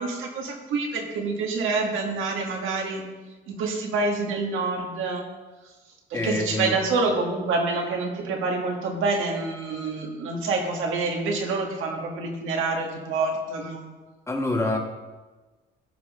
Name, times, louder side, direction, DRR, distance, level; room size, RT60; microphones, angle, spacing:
voice 1, 0.0-3.0 3.5-5.2 6.1-13.9, right 3 dB, 85° right, 1 dB, 1.8 m, -27 dB
voice 2, 6.1-6.8 14.3-14.8, left 2 dB, 15° left, 1 dB, 1.7 m, -26 dB
15.5 x 5.6 x 3.7 m, 1.3 s
cardioid pair, 90°, 20 cm